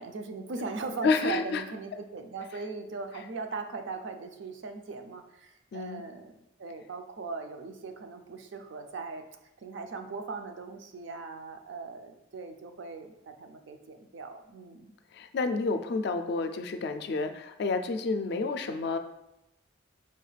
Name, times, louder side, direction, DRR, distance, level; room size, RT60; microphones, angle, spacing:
voice 1, 0.0-9.2 9.6-14.9, right 4 dB, 75° right, 6 dB, 0.4 m, -39 dB
voice 2, 1.0-1.6 5.7-6.0 15.1-19.0, left 4 dB, 60° left, 8 dB, 0.3 m, -29 dB
5.5 x 2.3 x 3.2 m, 0.89 s
head